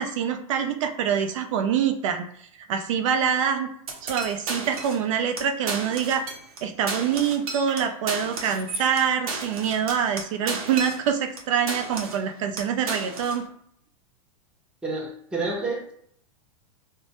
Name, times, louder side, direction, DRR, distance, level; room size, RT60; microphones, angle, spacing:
voice 1, 0.0-2.3 2.7-3.7 4.0-6.2 6.6-13.4, right 8 dB, 65° right, 0.4 m, -25 dB
sound 1, 3.9-5.1 5.4-5.5 5.7-6.6 6.9-11.4 11.7-12.3 12.6-13.4, right 4 dB, 85° right, 0.8 m, -33 dB
voice 2, 14.8-15.9, right 3 dB, 5° right, 0.5 m, -29 dB
2.1 x 2.0 x 2.8 m
supercardioid pair, 140°, 18 cm